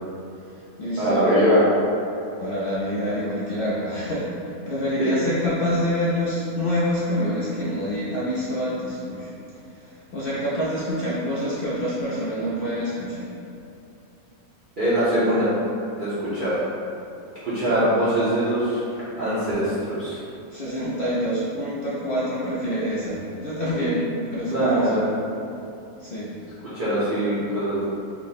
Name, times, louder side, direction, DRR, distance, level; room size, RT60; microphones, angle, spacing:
voice 1, 0.4-1.3 2.4-9.3 9.7-13.3 18.9-19.0 20.5-25.1 26.0-26.3, equal, 85° left, -8 dB, 0.4 m, -26 dB
voice 2, 1.0-1.7 5.0-5.2 14.8-15.5 16.0-16.6 17.4-18.8 19.2-20.2 24.5-25.0 26.7-27.8, equal, 50° right, -12 dB, 0.6 m, -22 dB
3.4 x 2.0 x 4.0 m, 2.8 s
omnidirectional pair, 1.5 m